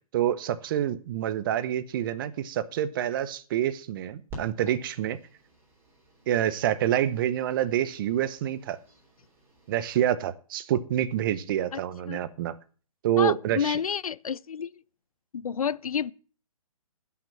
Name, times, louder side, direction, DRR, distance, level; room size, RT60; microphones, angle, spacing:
voice 1, 0.1-5.2 6.3-8.8 9.7-12.5 13.0-13.8, right 11 dB, 35° right, 0.8 m, -27 dB
sound 1, 4.3-10.0, right 1 dB, 10° right, 3.5 m, -50 dB
voice 2, 13.2-14.8 15.3-16.1, left 7 dB, 75° left, 0.5 m, -30 dB
11.5 x 5.9 x 7.6 m
figure-of-eight pair, 135°, 19 cm